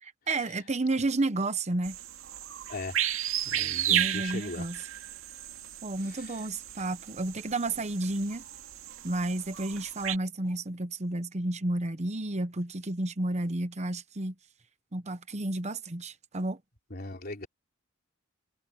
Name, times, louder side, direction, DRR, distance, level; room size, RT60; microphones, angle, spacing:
voice 1, 0.0-2.0 3.9-4.8 5.8-8.4 9.0-14.3 14.9-16.6, right 2 dB, 35° right, 1.0 m, -31 dB
sound 1, 1.8-10.2, right 11 dB, 75° right, 2.2 m, -34 dB
voice 2, 3.4-4.7 6.1-6.4 16.9-17.5, left 2 dB, 50° left, 3.6 m, -39 dB
head